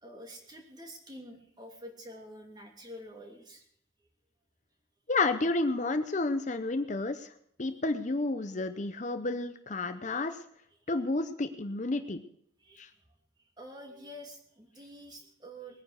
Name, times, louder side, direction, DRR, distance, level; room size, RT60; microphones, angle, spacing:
voice 1, 0.0-3.6 12.6-12.8 13.6-15.8, equal, 20° right, 2 dB, 2.8 m, -47 dB
voice 2, 5.1-7.3 7.6-10.4 10.9-12.2 12.8-12.9, left 2 dB, 40° left, 9 dB, 0.7 m, -31 dB
20.5 x 9.6 x 6.4 m, 0.68 s
head